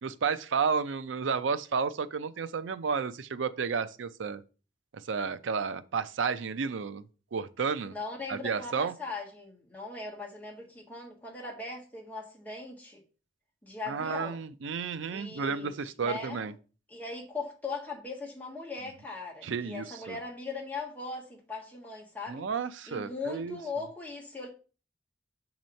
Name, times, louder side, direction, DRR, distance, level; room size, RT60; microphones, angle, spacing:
voice 1, 0.0-4.4 5.1-7.0 7.3-7.9 8.3-8.9 13.9-16.5 19.4-20.2 22.3-23.6, right 5 dB, 90° right, 0.5 m, -32 dB
voice 2, 7.9-13.0 13.6-14.4 15.1-16.4 16.9-22.5 22.9-24.5, left 3 dB, 10° left, 1.5 m, -39 dB
6.3 x 3.0 x 5.2 m
head